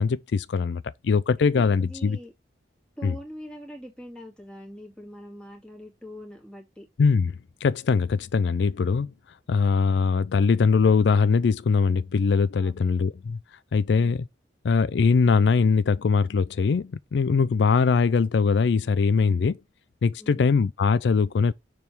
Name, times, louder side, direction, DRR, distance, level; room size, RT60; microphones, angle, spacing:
voice 1, 0.0-2.2 3.0-3.1 7.0-7.3 7.6-9.1 9.5-13.4 13.7-14.2 14.6-19.6 20.0-21.5, left 5 dB, 75° left, 0.4 m, -22 dB
voice 2, 1.5-2.3 3.0-6.9 12.6-12.9 20.2-20.6, equal, 5° left, 2.2 m, -43 dB
6.9 x 3.5 x 5.8 m
head